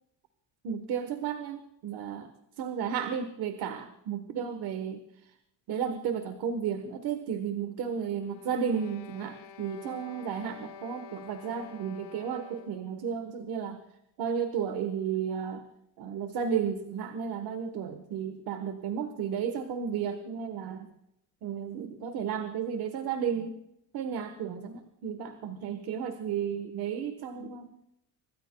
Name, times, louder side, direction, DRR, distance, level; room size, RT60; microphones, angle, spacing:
voice 1, 0.6-2.3 2.6-5.0 5.7-13.8 14.2-15.6 16.0-20.9 21.4-23.6 23.9-27.7, right 7 dB, 65° right, 8 dB, 1.3 m, -33 dB
sound 1, 8.2-12.9, left 7 dB, 60° left, 1.3 m, -49 dB
25.5 x 23.0 x 2.3 m, 0.82 s
cardioid pair, 180°, 40 cm